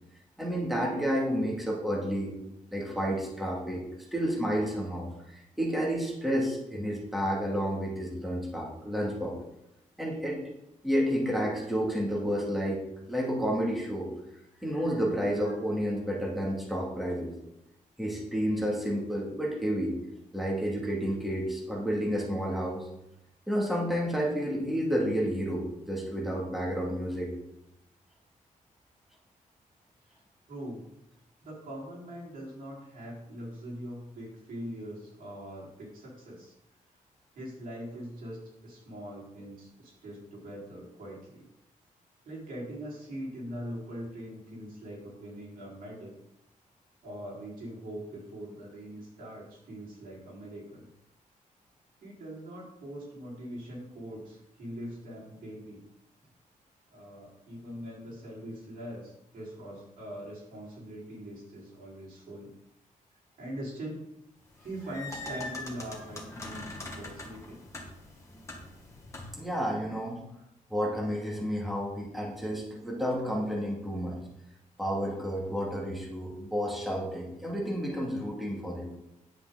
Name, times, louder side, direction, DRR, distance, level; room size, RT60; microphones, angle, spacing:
voice 1, 0.4-2.3 2.7-3.8 4.1-9.4 10.0-10.4 10.8-12.8 13.1-14.1 14.6-17.3 18.0-19.9 20.3-22.9 23.5-27.3 69.3-70.2 70.7-74.2 74.8-78.9, equal, ahead, -3 dB, 2.3 m, -30 dB
voice 2, 30.5-30.9 31.4-36.5 37.3-41.5 42.2-46.1 47.0-50.9 52.0-55.8 56.9-62.5 63.4-64.1 64.6-67.6, equal, 90° right, -5 dB, 4.4 m, -42 dB
sound 1, 64.5-69.5, left 2 dB, 20° left, 1.8 m, -42 dB
10.0 x 8.3 x 3.9 m, 0.85 s
wide cardioid pair, 165°, 14 cm